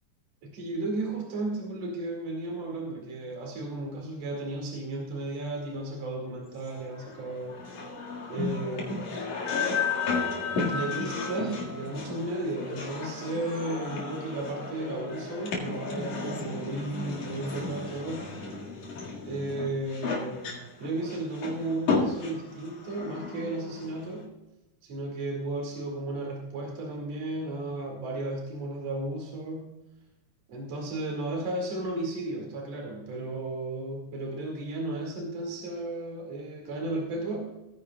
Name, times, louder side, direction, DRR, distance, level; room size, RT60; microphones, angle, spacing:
voice 1, 0.4-7.8 8.3-9.2 10.5-18.3 19.3-24.3 24.8-29.7 30.5-37.5, right 2 dB, 60° right, 0 dB, 3.2 m, -34 dB
sound 1, 6.7-24.3, left 4 dB, 90° left, 3.4 m, -33 dB
18.5 x 9.8 x 2.3 m, 1.0 s
omnidirectional pair, 3.3 m